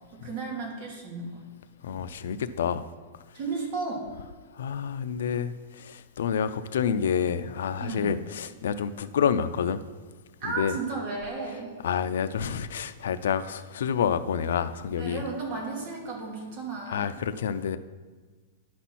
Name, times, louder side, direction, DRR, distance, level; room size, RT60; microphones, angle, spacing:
voice 1, 0.1-1.4 3.3-4.0 7.8-8.1 10.4-11.8 15.0-17.1, right 4 dB, 40° right, 2.1 m, -34 dB
voice 2, 1.8-2.9 4.6-9.8 10.4-10.8 11.8-15.2 16.9-17.8, left 7 dB, 80° left, 0.5 m, -28 dB
10.0 x 4.2 x 5.8 m
supercardioid pair, 165°, 0 cm